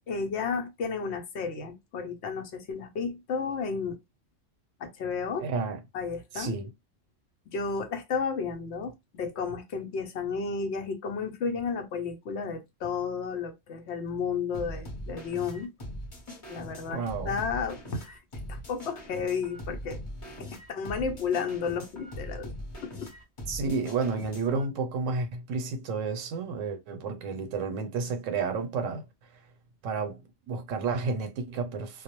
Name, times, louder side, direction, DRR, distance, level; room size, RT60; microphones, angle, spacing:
voice 1, 0.1-4.0 4.8-5.5 5.9-6.6 7.5-15.7 16.5-18.2 18.5-20.0 20.4-22.5 22.8-23.1, left 5 dB, 65° left, 0.9 m, -32 dB
voice 2, 5.4-5.8 6.3-6.7 16.9-17.4 23.5-29.0 29.8-32.0, right 4 dB, 90° right, 1.0 m, -31 dB
sound 1, 14.5-24.6, equal, 30° left, 0.8 m, -41 dB
2.3 x 2.0 x 2.9 m
omnidirectional pair, 1.3 m